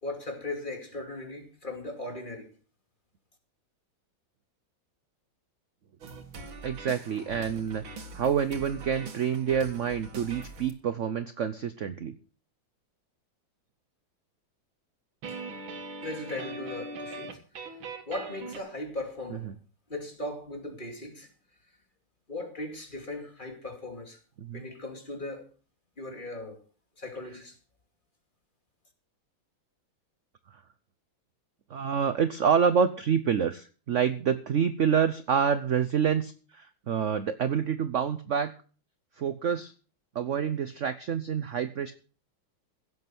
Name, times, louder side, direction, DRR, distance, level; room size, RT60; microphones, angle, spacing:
voice 1, 0.0-2.5 16.0-17.4 18.1-19.5 19.9-21.3 22.3-24.2 24.5-25.5 26.0-26.6 27.0-27.6, left 2 dB, 25° left, 2.6 m, -38 dB
sound 1, 6.0-10.7 15.2-18.6, right 3 dB, 75° right, 2.6 m, -41 dB
voice 2, 6.6-7.8 8.1-12.1 19.3-19.5 24.4-24.6 31.7-38.5 39.2-39.7 40.1-41.9, right 7 dB, 60° right, 0.8 m, -27 dB
16.5 x 8.0 x 6.1 m
omnidirectional pair, 2.2 m